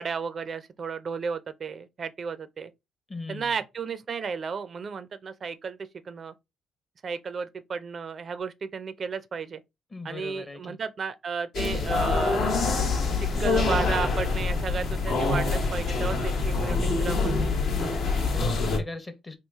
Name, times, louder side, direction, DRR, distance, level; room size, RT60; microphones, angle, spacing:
voice 1, 0.0-2.7 3.3-5.8 6.1-6.3 7.0-9.6 10.0-12.4 13.2-17.5, right 5 dB, 45° right, 0.4 m, -33 dB
voice 2, 3.1-3.6 9.9-10.8 17.7-19.4, left 3 dB, 25° left, 0.7 m, -39 dB
sound 1, 11.5-18.8, left 3 dB, 70° left, 1.0 m, -25 dB
3.0 x 2.3 x 3.4 m
cardioid pair, 90°, 0 cm